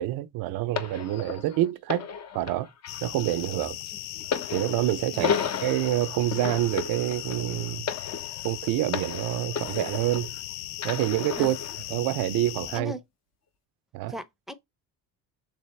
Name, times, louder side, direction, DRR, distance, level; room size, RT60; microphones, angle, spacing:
voice 1, 0.0-2.1 2.3-2.7 3.0-3.8 4.5-5.3 5.6-7.9 8.4-10.3 10.8-11.6 11.9-12.9 13.9-14.1, right 14 dB, 65° right, 0.5 m, -27 dB
sound 1, 0.8-10.4 10.8-11.8 12.6-12.8, left 6 dB, 45° left, 0.7 m, -34 dB
Suburban Summer Night, 2.9-12.8, left 14 dB, 90° left, 0.5 m, -38 dB
voice 2, 14.0-14.5, equal, ahead, 0.6 m, -37 dB
3.4 x 3.3 x 3.1 m
cardioid pair, 95°, 38 cm